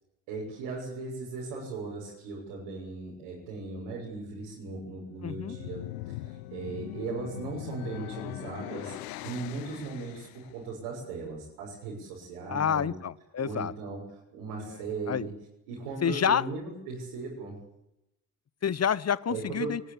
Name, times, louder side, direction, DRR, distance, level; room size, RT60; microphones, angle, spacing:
voice 1, 0.3-12.9 13.4-14.0 14.3-15.3 15.7-17.5 19.3-19.7, right 3 dB, 70° right, -4 dB, 6.7 m, -38 dB
sound 1, 5.1-10.5, left 16 dB, 75° left, 1.0 m, -41 dB
voice 2, 5.2-5.6 12.5-13.7 14.6-14.8 15.1-15.3 16.0-16.4 18.6-19.8, left 8 dB, 35° left, 20 dB, 1.0 m, -28 dB
22.5 x 20.5 x 8.3 m, 0.87 s
figure-of-eight pair, 40°, 45 cm